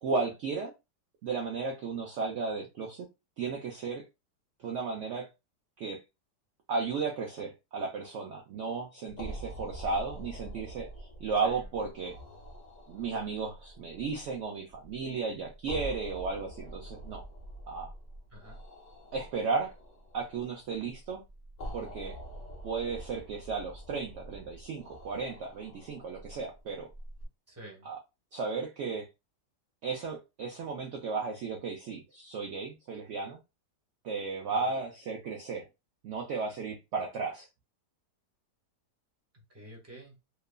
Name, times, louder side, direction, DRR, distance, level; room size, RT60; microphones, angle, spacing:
voice 1, 0.0-0.7 1.2-3.1 3.4-4.0 4.6-5.3 5.8-6.0 6.7-12.2 12.9-17.2 17.7-17.9 19.1-19.7 20.1-21.2 21.7-22.2 22.6-26.9 27.9-28.0 28.3-29.1 29.8-33.4 34.0-35.7 36.0-37.5, right 4 dB, 75° right, 0.7 m, -34 dB
sound 1, 9.1-27.3, right 1 dB, 70° left, 0.4 m, -46 dB
voice 2, 18.3-18.6 27.5-27.9 34.5-34.8 39.3-40.2, right 1 dB, 10° right, 0.9 m, -50 dB
2.9 x 2.4 x 2.2 m
omnidirectional pair, 1.8 m